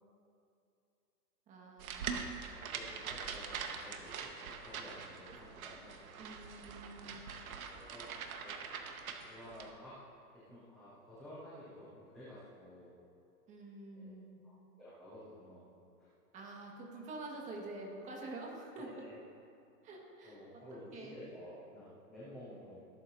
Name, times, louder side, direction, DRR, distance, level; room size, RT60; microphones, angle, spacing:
voice 1, 1.5-2.4 6.2-7.2 13.5-14.4 16.3-19.0 19.8-20.4 20.9-21.2, right 2 dB, 15° right, -1 dB, 1.6 m, -47 dB
sound 1, 1.8-9.7, right 6 dB, 60° right, 1.4 m, -43 dB
voice 2, 2.7-6.0 7.1-7.3 7.6-8.1 8.4-8.6 9.1-9.9 10.5-12.9 13.9-14.2 14.4-15.7 16.0-16.1 18.9-19.2 20.2-22.8, equal, 5° left, -17 dB, 0.4 m, -52 dB
17.5 x 11.5 x 2.7 m, 2.6 s
hypercardioid pair, 160°, 47 cm